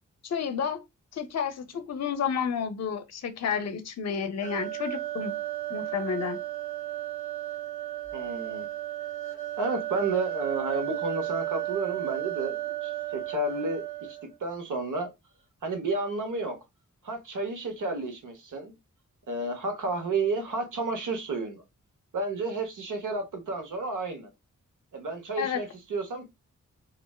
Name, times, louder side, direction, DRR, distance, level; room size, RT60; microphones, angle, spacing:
voice 1, 0.2-0.8 1.1-5.3 5.7-6.4 25.4-25.6, left 7 dB, 60° left, 0.5 m, -31 dB
sound 1, 4.4-14.3, right 15 dB, 30° right, 1.2 m, -34 dB
voice 2, 8.1-8.7 9.6-13.8 14.1-15.1 15.6-16.6 17.0-18.7 19.3-21.6 22.1-24.3 24.9-26.3, right 3 dB, 85° right, 0.9 m, -31 dB
3.2 x 2.4 x 2.2 m
wide cardioid pair, 100°, 30 cm